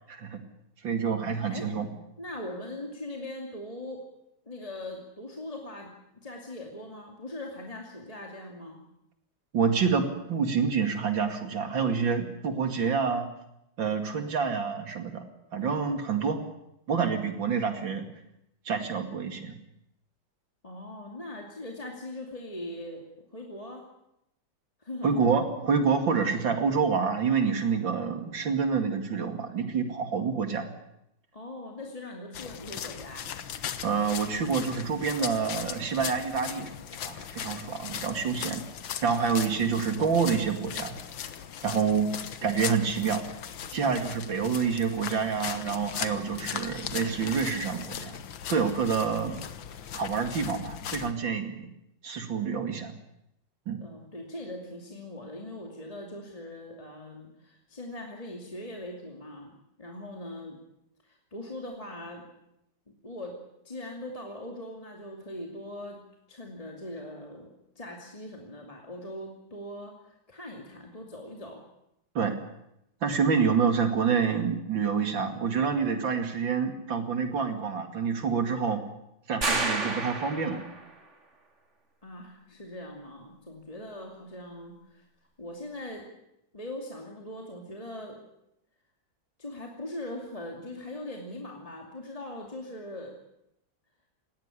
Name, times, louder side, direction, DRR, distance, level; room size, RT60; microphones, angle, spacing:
voice 1, 0.1-0.4 0.8-1.9 9.5-13.3 13.8-15.2 15.5-16.4 16.9-18.1 18.6-19.5 25.0-30.7 33.8-36.7 37.1-38.6 39.0-41.0 41.6-42.1 42.4-43.2 43.7-48.2 48.5-49.4 49.9-51.7 52.0-52.9 53.7-53.8 72.1-72.4 73.0-78.8 79.3-80.7, right 6 dB, 75° right, 6 dB, 3.1 m, -27 dB
voice 2, 2.2-4.0 4.5-5.9 6.2-8.8 20.6-23.8 24.8-25.3 31.3-33.2 53.8-60.6 61.0-62.2 63.0-63.3 63.6-66.0 66.3-67.5 67.8-71.6 82.0-85.0 85.4-86.0 86.5-88.2 89.4-93.2, left 1 dB, 20° left, 0 dB, 2.7 m, -41 dB
sound 1, 32.3-51.1, left 8 dB, 80° left, 1.9 m, -38 dB
sound 2, 79.4-80.9, right 3 dB, 35° right, 2.9 m, -30 dB
20.0 x 17.0 x 9.9 m, 0.83 s
omnidirectional pair, 2.1 m